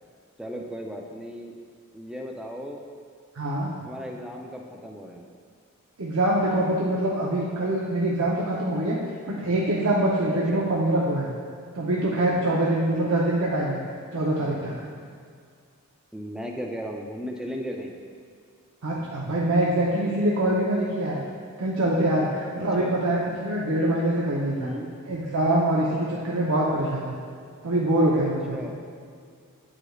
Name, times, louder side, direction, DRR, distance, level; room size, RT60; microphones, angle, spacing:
voice 1, 0.4-1.5 1.9-2.8 3.8-5.2 10.5-10.7 16.1-18.0 22.5-23.0 24.4-24.9 28.2-28.7, equal, 5° right, 1 dB, 0.4 m, -36 dB
voice 2, 3.3-3.8 6.0-9.0 9.3-11.3 11.7-13.8 14.1-14.7 18.8-21.2 21.6-24.7 25.1-27.2 27.6-28.7, right 1 dB, 65° right, -5 dB, 0.7 m, -24 dB
8.8 x 4.9 x 2.3 m, 2.1 s
head